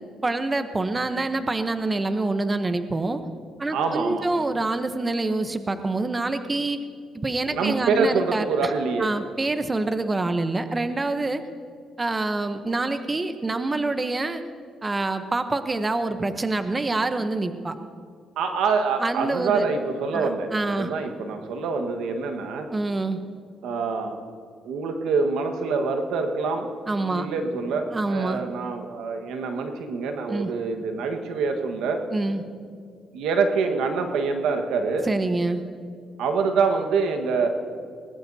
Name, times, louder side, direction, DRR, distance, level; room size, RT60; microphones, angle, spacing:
voice 1, 0.2-3.2 3.6-6.8 7.1-8.7 9.0-11.4 12.0-14.4 14.8-17.8 19.0-19.7 20.1-20.9 22.7-23.2 26.9-27.3 27.9-28.4 30.3-30.5 32.1-32.4 35.0-35.6, right 2 dB, 25° right, 9 dB, 0.8 m, -26 dB
voice 2, 3.7-4.3 7.5-9.1 18.4-22.7 23.6-24.2 24.6-26.7 27.0-32.0 33.1-35.1 36.2-37.5, right 4 dB, 85° right, 5 dB, 1.4 m, -25 dB
20.5 x 19.0 x 2.8 m, 2.3 s
cardioid pair, 90°, 0 cm